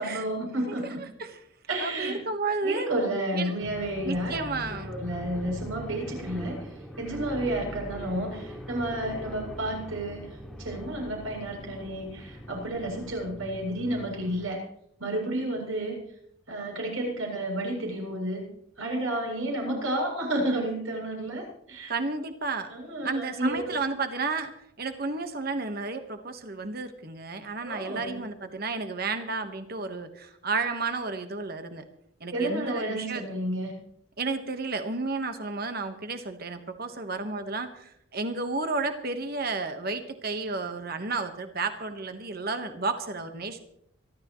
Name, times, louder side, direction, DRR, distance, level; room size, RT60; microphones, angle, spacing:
voice 1, 0.0-1.0 1.7-2.2 2.6-4.4 4.9-14.6 15.0-16.0 16.5-18.4 18.8-21.9 22.7-23.8 27.6-28.2 32.3-33.7, right 1 dB, 80° right, 0 dB, 7.9 m, -31 dB
voice 2, 0.7-1.4 1.8-2.9 3.3-3.5 4.0-4.9 21.9-22.7 23.0-24.5 24.8-31.8 32.2-33.2 34.2-43.6, right 3 dB, 45° right, 7 dB, 1.4 m, -32 dB
sound 1, 3.6-14.5, equal, ahead, 2.4 m, -41 dB
26.0 x 12.5 x 3.2 m, 0.71 s
head